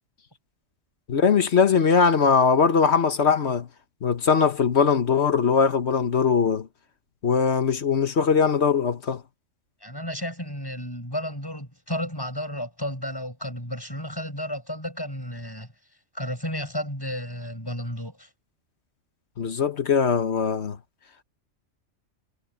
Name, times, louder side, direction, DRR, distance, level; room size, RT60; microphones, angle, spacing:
voice 1, 1.1-3.7 4.0-6.7 7.2-9.2 19.4-20.8, left 6 dB, 55° left, 1.4 m, -21 dB
voice 2, 9.8-15.7 16.1-18.3, equal, 15° left, 8.2 m, -32 dB
omnidirectional pair, 1.4 m